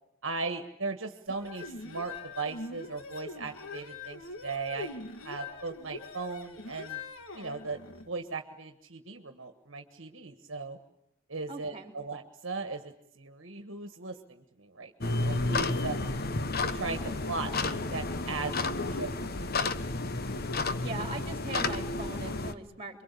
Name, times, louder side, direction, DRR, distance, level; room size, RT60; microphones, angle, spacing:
voice 1, 0.2-4.9 5.2-7.0 7.3-7.8 8.1-10.8 11.3-16.0 16.7-19.5, right 4 dB, 65° right, 6 dB, 1.7 m, -38 dB
sound 1, 1.3-8.1, left 3 dB, 70° left, 1.7 m, -43 dB
voice 2, 11.5-11.9 20.8-23.0, right 3 dB, 30° right, 5 dB, 3.6 m, -40 dB
sound 2, 15.0-22.5, left 3 dB, 45° left, 1.1 m, -31 dB
27.5 x 23.0 x 8.5 m, 0.80 s
head